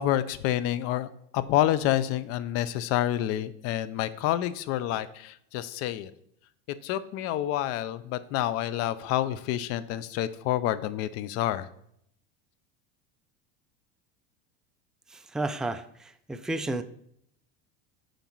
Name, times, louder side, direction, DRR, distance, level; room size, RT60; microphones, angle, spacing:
voice 1, 0.0-6.1 6.8-11.7, left 13 dB, 55° left, 15 dB, 0.6 m, -28 dB
voice 2, 15.1-16.8, right 2 dB, ahead, 9 dB, 0.3 m, -32 dB
9.2 x 5.3 x 4.6 m, 0.71 s
supercardioid pair, 125°, 29 cm